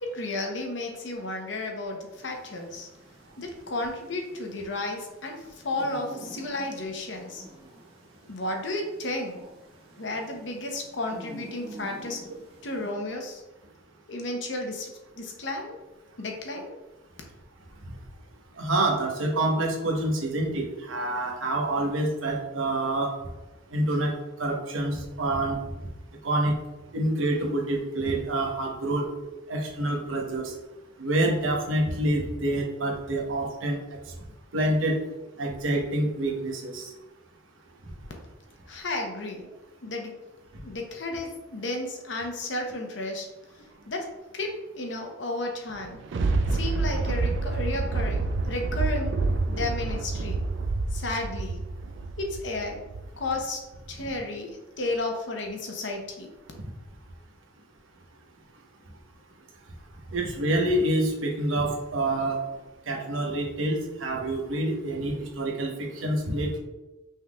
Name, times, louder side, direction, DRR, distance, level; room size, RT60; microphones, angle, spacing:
voice 1, 0.0-2.9 3.4-7.4 8.3-9.4 10.0-12.2 12.6-13.4 14.1-15.8 16.2-16.8 38.7-39.5 39.8-40.2 40.6-46.0 46.5-49.2 49.5-50.4 50.9-51.6 52.2-52.8 53.2-53.6 53.9-56.3, left 2 dB, 65° left, 2 dB, 0.8 m, -33 dB
sound 1, 2.1-12.9, right 1 dB, 30° right, 1.4 m, -48 dB
voice 2, 18.6-23.1 23.7-24.1 24.4-25.6 26.2-26.5 26.9-29.1 29.5-30.5 31.0-34.0 34.5-35.0 35.4-36.9 60.1-62.4 62.9-66.6, right 1 dB, 85° right, 0 dB, 1.0 m, -27 dB
Thunder, 45.7-53.2 53.7-53.8, right 3 dB, 65° right, 0.3 m, -28 dB
5.5 x 3.6 x 2.3 m, 1.1 s
head